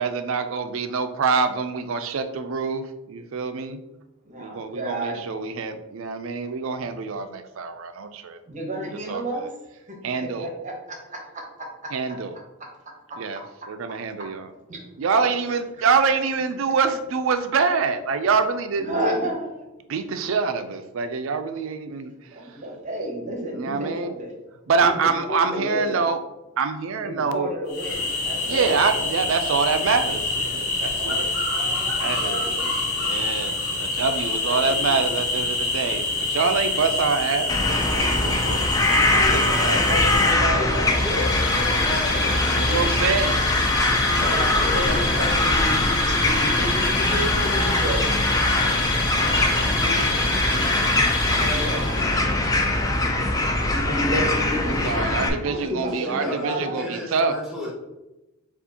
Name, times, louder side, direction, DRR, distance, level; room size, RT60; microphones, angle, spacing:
voice 1, 0.0-3.8 4.4-8.4 9.1-9.5 10.0-10.5 11.9-12.4 13.2-13.4 13.7-14.5 15.0-19.0 19.9-22.1 23.5-24.1 24.7-26.2 26.6-27.5 28.5-31.3 32.0-32.5 33.0-38.7 39.1-39.8 42.5-43.4 54.7-57.3, right 5 dB, 65° right, 9 dB, 0.4 m, -25 dB
voice 2, 4.2-5.3 8.5-9.5 9.9-11.2 11.6-11.7 14.7-14.8 18.8-19.7 22.3-24.3 24.8-26.0 27.0-29.5 31.0-32.7 34.1-35.1 38.9-41.0 42.5-42.8 44.2-48.0 51.2-54.9 55.4-56.9, right 1 dB, 35° right, -1 dB, 0.9 m, -32 dB
sound 1, 27.7-40.3, left 2 dB, 80° left, 1.1 m, -26 dB
sound 2, 37.5-55.3, left 2 dB, 15° left, 0.4 m, -22 dB
voice 3, 40.4-43.1 44.2-45.6 49.1-50.1 54.9-57.7, left 2 dB, ahead, -7 dB, 1.5 m, -33 dB
sound 3, 40.5-52.4, left 2 dB, 45° left, 0.9 m, -27 dB
6.9 x 2.4 x 2.8 m, 1.0 s
head